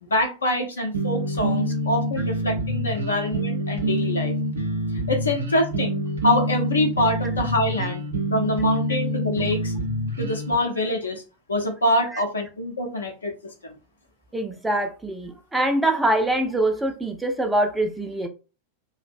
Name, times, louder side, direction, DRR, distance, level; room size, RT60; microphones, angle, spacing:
voice 1, 0.0-4.3 5.1-8.0 8.3-9.7 10.2-11.2 11.5-13.3 13.6-13.8 15.6-15.7, left 1 dB, 75° left, 0.6 m, -25 dB
sound 1, 0.9-10.5, equal, 70° right, 0.6 m, -26 dB
voice 2, 14.3-18.3, right 1 dB, 5° right, 0.4 m, -24 dB
2.5 x 2.1 x 2.4 m
figure-of-eight pair, 90°, 0 cm